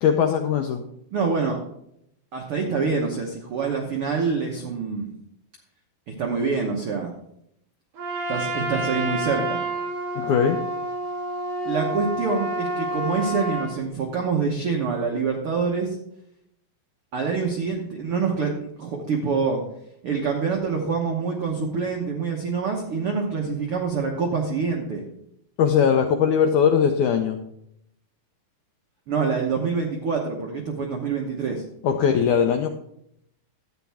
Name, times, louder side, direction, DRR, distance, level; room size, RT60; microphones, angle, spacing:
voice 1, 0.0-0.8 10.2-10.6 25.6-27.4 31.8-32.7, left 7 dB, 85° left, 4 dB, 1.7 m, -20 dB
voice 2, 1.1-1.6 2.3-5.1 6.1-7.1 8.3-9.6 11.6-16.0 17.1-19.6 20.0-25.0 29.1-31.6, right 5 dB, 90° right, 1 dB, 1.2 m, -26 dB
Trumpet, 8.0-13.7, right 1 dB, 55° right, 4.3 m, -29 dB
12.0 x 9.2 x 3.5 m, 0.74 s
omnidirectional pair, 4.3 m